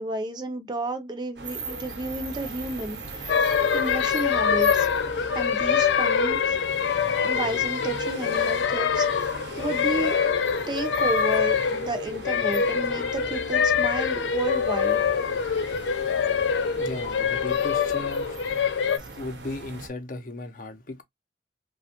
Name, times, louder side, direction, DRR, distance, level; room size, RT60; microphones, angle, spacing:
voice 1, 0.0-4.9 5.3-6.6 7.2-10.2 10.7-15.0, right 2 dB, 25° right, 0.5 m, -32 dB
sound 1, 1.4-19.9, right 3 dB, 80° right, 0.8 m, -40 dB
sound 2, 3.3-19.0, left 6 dB, 85° left, 0.4 m, -24 dB
voice 2, 16.7-18.4 19.2-21.0, left 2 dB, 50° left, 0.6 m, -36 dB
2.9 x 2.2 x 2.8 m
head